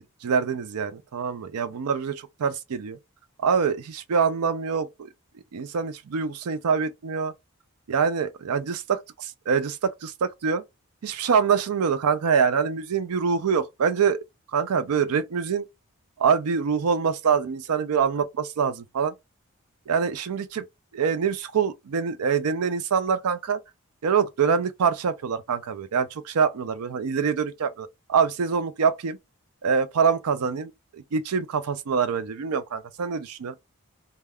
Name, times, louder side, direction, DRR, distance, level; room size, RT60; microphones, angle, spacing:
voice 1, 0.0-3.0 3.4-5.1 5.5-7.3 7.9-10.6 11.0-14.2 14.5-15.7 16.2-19.1 19.9-20.6 20.9-23.6 24.0-29.2 29.6-33.5, right 6 dB, 85° right, 0.4 m, -25 dB
3.4 x 2.2 x 2.2 m
head